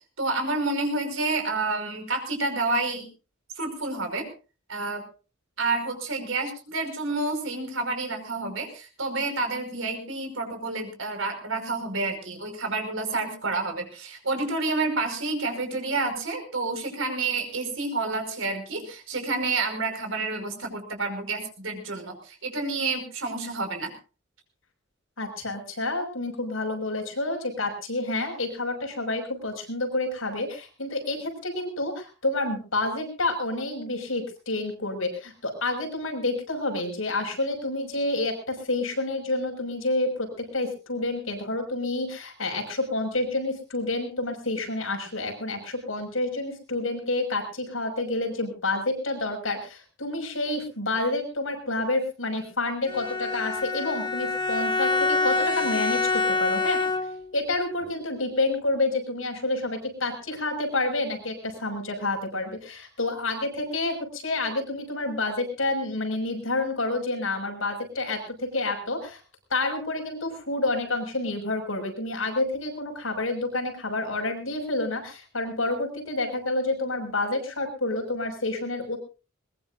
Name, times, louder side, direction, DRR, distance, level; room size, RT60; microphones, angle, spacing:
voice 1, 0.2-3.1 3.6-4.3 4.7-5.0 5.6-23.9, right 3 dB, 75° right, 6 dB, 5.3 m, -29 dB
voice 2, 25.2-56.8 57.3-69.2 69.5-79.0, left 2 dB, 80° left, 4 dB, 6.0 m, -29 dB
Bowed string instrument, 52.9-57.3, left 3 dB, 25° left, 1.7 m, -26 dB
21.5 x 20.5 x 2.6 m, 0.35 s
head